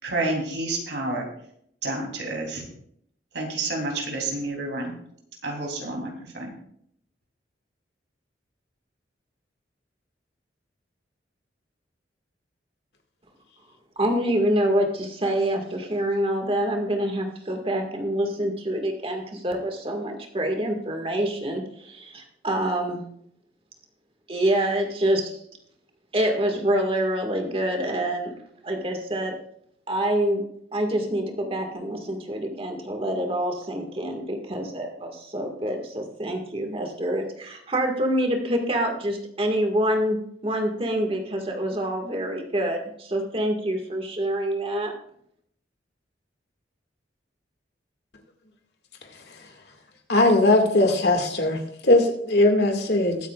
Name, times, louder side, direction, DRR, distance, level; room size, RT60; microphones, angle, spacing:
voice 1, 0.0-1.3 1.8-2.7 3.3-4.9 5.4-6.5, right 2 dB, 75° right, 1 dB, 3.3 m, -29 dB
voice 2, 14.0-23.0 24.3-25.3 26.1-28.3 28.6-29.4 29.9-44.9, right 1 dB, 30° right, 3 dB, 1.9 m, -26 dB
voice 3, 50.1-53.2, left 2 dB, 65° left, 3 dB, 2.1 m, -19 dB
21.5 x 9.0 x 2.5 m, 0.68 s
head